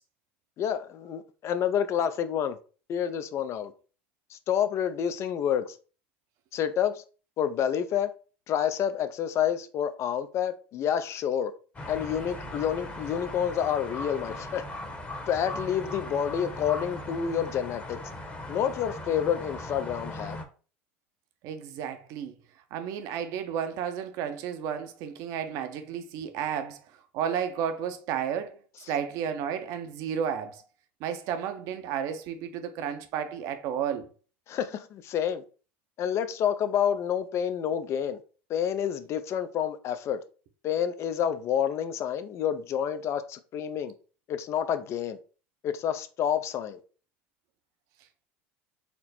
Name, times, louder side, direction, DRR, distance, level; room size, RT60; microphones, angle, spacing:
voice 1, 0.6-2.6 2.9-3.7 4.3-5.8 6.5-7.0 7.4-8.1 8.5-11.5 11.9-14.6 15.3-18.0 18.5-20.4 34.5-35.4 36.0-38.2 38.5-40.2 40.6-43.9 44.3-45.2 45.6-46.8, left 9 dB, 50° left, 0.5 m, -28 dB
sound 1, 11.7-20.4, left 1 dB, 20° left, 1.0 m, -39 dB
voice 2, 21.4-22.3 22.7-26.8 27.1-28.6 28.9-30.6 31.0-34.1, right 8 dB, 60° right, 0.7 m, -32 dB
4.3 x 2.1 x 4.1 m
hypercardioid pair, 90°, 6 cm